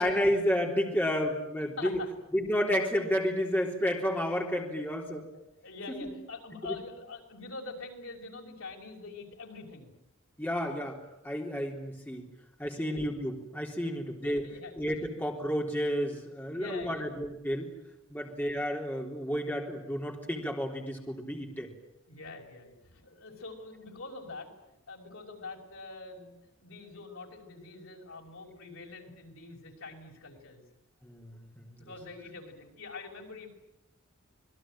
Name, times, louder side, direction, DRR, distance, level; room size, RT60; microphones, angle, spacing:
voice 1, 0.0-2.0 2.3-5.2 5.9-6.1 6.6-6.8 10.4-11.0 11.2-12.2 12.6-14.4 14.8-17.7 18.1-21.7 31.0-31.9, equal, 10° left, 0 dB, 3.6 m, -31 dB
voice 2, 1.8-2.1 5.6-9.9 12.7-13.0 13.8-15.0 16.5-17.1 18.1-18.2 22.1-30.6 31.7-33.5, left 3 dB, 70° left, 2 dB, 5.9 m, -45 dB
27.0 x 21.5 x 9.1 m, 0.86 s
head